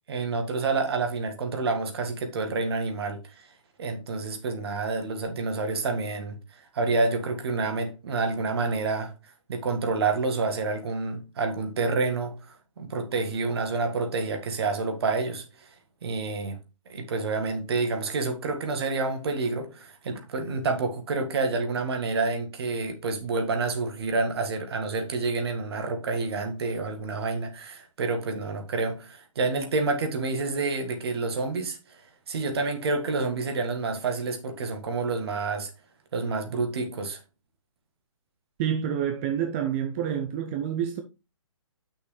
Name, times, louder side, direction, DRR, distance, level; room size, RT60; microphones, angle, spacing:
voice 1, 0.1-3.5 3.8-6.4 6.7-9.1 9.5-15.7 16.0-16.6 16.9-32.0 32.3-35.7 36.1-37.2, right 3 dB, 50° right, 1.7 m, -28 dB
voice 2, 38.6-41.0, right 9 dB, 25° right, 0.6 m, -28 dB
8.2 x 6.2 x 3.2 m
figure-of-eight pair, 130°, 17 cm